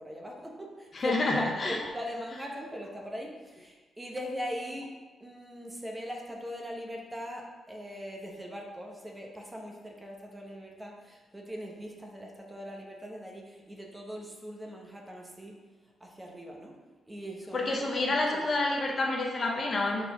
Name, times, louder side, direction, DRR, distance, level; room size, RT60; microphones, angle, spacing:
voice 1, 0.0-4.9 5.2-15.6 16.0-16.7 17.1-18.5, equal, 10° right, 0 dB, 0.9 m, -40 dB
voice 2, 0.9-1.8 17.5-20.1, left 2 dB, 30° left, 1 dB, 0.7 m, -28 dB
6.5 x 4.0 x 6.0 m, 1.3 s
wide cardioid pair, 175°, 0 cm